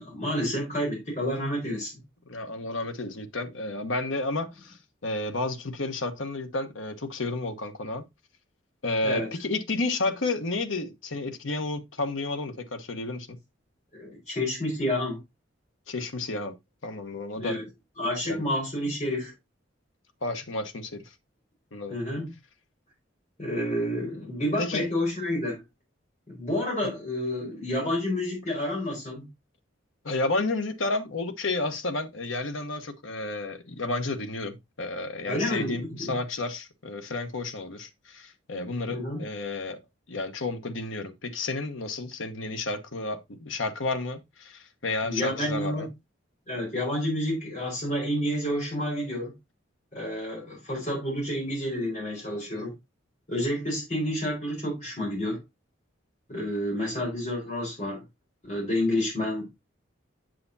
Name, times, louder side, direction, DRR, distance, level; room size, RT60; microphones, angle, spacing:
voice 1, 0.0-1.9 9.0-9.3 13.9-15.2 17.4-17.6 18.0-19.3 21.9-22.3 23.4-25.6 26.3-29.3 35.3-36.2 38.9-39.2 45.0-45.9 46.5-49.3 49.9-52.7 53.3-55.4 56.3-58.0 58.4-59.5, left 1 dB, 35° left, 4.4 m, -29 dB
voice 2, 2.3-8.0 8.8-13.4 15.9-16.5 16.8-17.6 18.2-18.5 20.2-21.1 21.7-22.0 24.6-24.9 26.8-26.9 30.0-39.8 40.1-45.9, left 2 dB, 85° left, 1.1 m, -31 dB
7.7 x 7.2 x 2.6 m
head